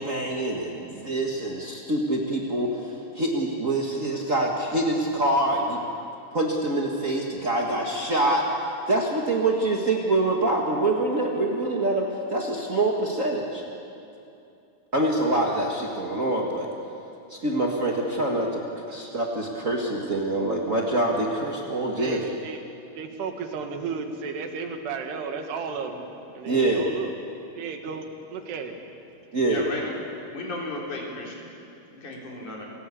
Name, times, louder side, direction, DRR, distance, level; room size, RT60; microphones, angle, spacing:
voice 1, 0.0-5.8 6.3-8.4 8.9-13.6 14.9-16.7 17.3-22.2 26.4-26.9 29.3-29.7, right 2 dB, 70° right, -1 dB, 0.7 m, -25 dB
voice 2, 22.0-22.7 23.0-26.1 26.4-27.1 27.5-28.8, right 5 dB, 90° right, 5 dB, 3.9 m, -33 dB
voice 3, 29.5-29.9 30.3-31.3 31.9-32.7, left 2 dB, 50° left, -2 dB, 5.0 m, -34 dB
29.0 x 17.0 x 8.5 m, 2.7 s
omnidirectional pair, 4.6 m